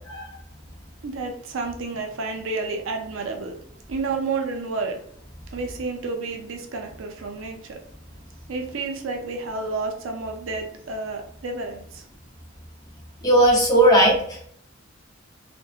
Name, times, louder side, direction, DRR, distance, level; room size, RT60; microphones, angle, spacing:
voice 1, 1.0-3.6 3.9-5.0 5.5-7.8 8.5-12.0, right 3 dB, 80° right, 3 dB, 0.5 m, -30 dB
voice 2, 13.2-14.5, right 1 dB, 20° left, -3 dB, 0.7 m, -17 dB
2.7 x 2.1 x 2.3 m, 0.64 s
head